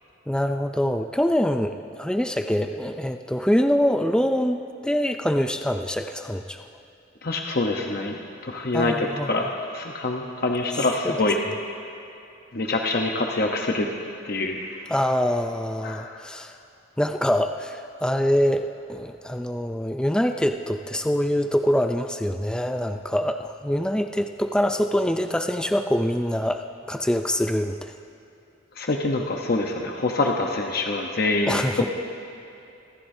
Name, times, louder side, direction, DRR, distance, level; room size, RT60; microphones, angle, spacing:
voice 1, 0.3-6.6 8.7-9.3 11.1-11.2 14.9-16.5 17.0-27.9 31.5-31.9, equal, 5° left, 6 dB, 0.4 m, -24 dB
voice 2, 7.2-11.4 12.5-13.9 14.2-14.6 15.8-16.2 28.8-31.6, left 2 dB, 50° left, 1 dB, 0.9 m, -25 dB
26.0 x 13.5 x 2.7 m, 2.8 s
head